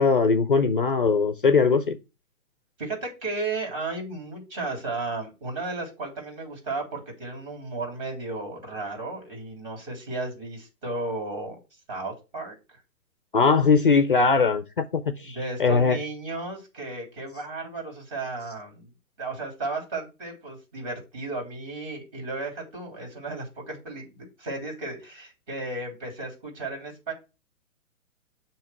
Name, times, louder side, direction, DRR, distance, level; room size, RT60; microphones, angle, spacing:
voice 1, 0.0-2.0 13.3-16.0, left 4 dB, 40° left, 0.4 m, -21 dB
voice 2, 2.8-11.5 11.9-12.8 15.2-18.9 19.2-27.1, right 3 dB, 30° right, 3.3 m, -34 dB
7.0 x 2.9 x 5.9 m
hypercardioid pair, 165°, 43 cm